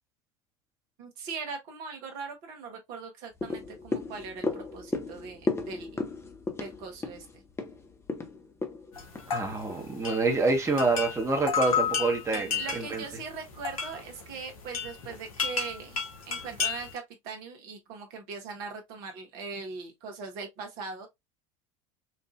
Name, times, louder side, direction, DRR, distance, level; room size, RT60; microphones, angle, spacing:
voice 1, 1.0-6.0 6.6-7.3 12.3-21.1, right 5 dB, 55° right, 1.2 m, -40 dB
sound 1, 3.4-9.8 10.2-10.3, left 3 dB, 15° left, 0.8 m, -35 dB
sound 2, 8.9-17.0, left 6 dB, 80° left, 1.1 m, -33 dB
voice 2, 9.3-13.0, right 3 dB, 15° right, 1.2 m, -27 dB
4.4 x 2.6 x 2.5 m
hypercardioid pair, 75°, 18 cm